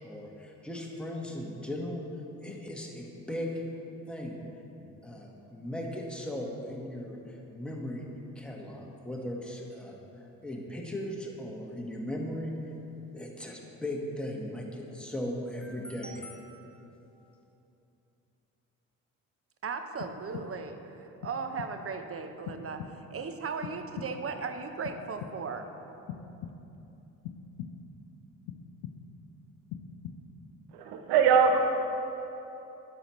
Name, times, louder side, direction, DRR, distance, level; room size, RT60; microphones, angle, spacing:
voice 1, 0.0-2.0 2.4-3.5 4.1-4.4 4.8-8.0 8.3-10.0 10.4-12.5 13.1-16.9, left 1 dB, ahead, -1 dB, 1.4 m, -38 dB
voice 2, 19.6-25.7, right 5 dB, 35° right, 7 dB, 0.7 m, -37 dB
sound 1, 20.0-20.8 21.2-22.0 22.5-23.3 23.6-24.4 24.8-25.7 26.1-26.9 27.2-28.0 28.5-29.3 29.7-30.5, left 7 dB, 65° left, 0.6 m, -43 dB
voice 3, 30.7-31.6, right 6 dB, 65° right, 5 dB, 0.9 m, -22 dB
9.9 x 7.0 x 3.1 m, 3.0 s
hypercardioid pair, 45°, 41 cm